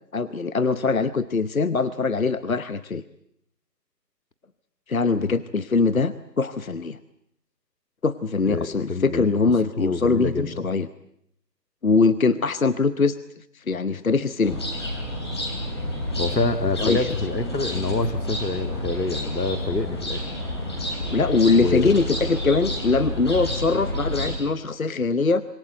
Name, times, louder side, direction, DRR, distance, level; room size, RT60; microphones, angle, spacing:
voice 1, 0.1-3.0 4.9-7.0 8.0-10.9 11.8-13.2 13.5-14.6 16.8-17.1 21.1-25.4, left 4 dB, 55° left, 14 dB, 1.0 m, -22 dB
voice 2, 8.5-9.4 9.8-10.7 16.2-20.2 21.5-22.0, left 3 dB, 80° left, 10 dB, 2.0 m, -26 dB
sound 1, 14.4-24.3, left 1 dB, 15° left, 3.1 m, -29 dB
27.0 x 22.5 x 8.2 m, 0.73 s
figure-of-eight pair, 175°, 50 cm